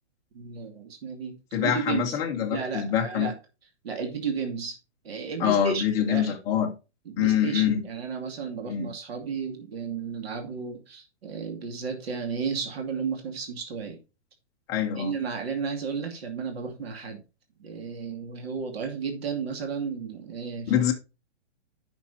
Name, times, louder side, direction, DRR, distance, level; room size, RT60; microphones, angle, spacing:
voice 1, 0.3-2.2 2.5-3.4 3.8-4.8 5.0-6.3 7.1-14.0 15.0-17.2 17.6-20.8, right 5 dB, 55° right, 2.5 m, -33 dB
voice 2, 1.5-3.3 5.4-6.7 7.2-7.8 8.7-8.9 14.7-15.1 20.7-20.9, left 9 dB, 10° left, 0.7 m, -25 dB
14.0 x 6.1 x 2.7 m
hypercardioid pair, 170°, 35 cm